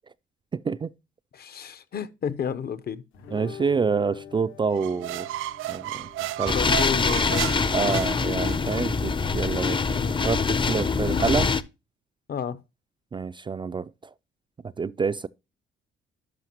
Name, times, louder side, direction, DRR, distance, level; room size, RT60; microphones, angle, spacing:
voice 1, 0.5-0.9 3.3-5.3 5.7-6.1 6.4-6.6 7.7-11.5 13.1-13.9 14.8-15.3, right 5 dB, 25° right, 0.3 m, -27 dB
voice 2, 1.3-3.0 6.5-7.9 9.9-10.2 10.8-10.9 12.3-12.6, left 7 dB, 50° left, 0.8 m, -32 dB
sound 1, 3.1-10.9, left 8 dB, 80° left, 1.9 m, -46 dB
sound 2, 4.7-8.8, right 15 dB, 85° right, 0.4 m, -34 dB
sound 3, 6.5-11.6, left 4 dB, 25° left, 0.6 m, -24 dB
11.5 x 5.7 x 2.9 m
cardioid pair, 90°, 20 cm